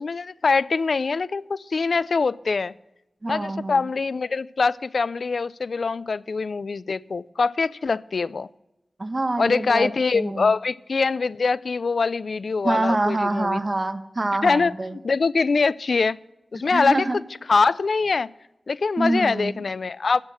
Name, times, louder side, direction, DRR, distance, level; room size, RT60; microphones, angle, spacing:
voice 1, 0.0-2.7 3.3-8.5 9.4-13.6 14.4-16.2 16.5-17.1 17.5-18.3 18.7-20.2, left 4 dB, 70° left, 19 dB, 0.3 m, -23 dB
voice 2, 3.2-3.9 9.0-10.5 12.6-15.0 16.7-17.2 19.0-19.5, right 2 dB, 35° right, 9 dB, 1.0 m, -26 dB
13.5 x 8.3 x 6.2 m, 0.94 s
wide cardioid pair, 85°, 0 cm